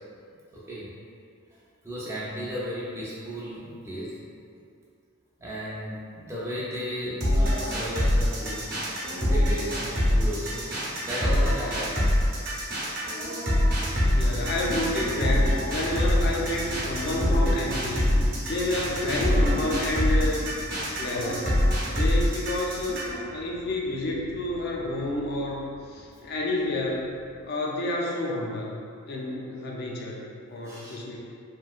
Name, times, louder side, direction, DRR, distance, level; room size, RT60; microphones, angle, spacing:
voice 1, 0.5-0.9 1.8-4.2 5.4-8.7 9.3-12.2 30.6-31.0, equal, 10° right, -8 dB, 0.4 m, -35 dB
sound 1, 7.2-23.2, equal, 45° right, 0.8 m, -24 dB
sound 2, 13.8-27.4, equal, 75° right, 0.7 m, -38 dB
voice 2, 14.1-20.5 21.0-21.5 21.8-27.1 27.4-28.7 29.1-30.2 30.5-31.2, left 1 dB, 45° left, -3 dB, 0.4 m, -30 dB
3.0 x 2.6 x 2.3 m, 2.3 s
head